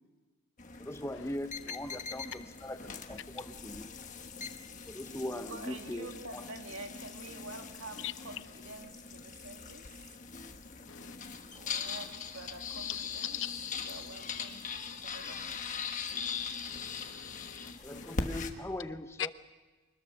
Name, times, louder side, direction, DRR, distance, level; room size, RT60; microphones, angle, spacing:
sound 1, 0.6-18.5, left 5 dB, 35° left, 1.3 m, -41 dB
voice 1, 0.8-3.9 4.9-6.4 17.8-19.3, left 1 dB, 10° left, 10 dB, 0.6 m, -40 dB
voice 2, 5.3-10.2 11.5-13.4 13.7-15.8, right 2 dB, 70° right, 4 dB, 2.3 m, -48 dB
voice 3, 16.7-18.2 19.2-19.3, left 10 dB, 60° left, 14 dB, 0.7 m, -42 dB
25.0 x 20.5 x 6.4 m, 1.3 s
head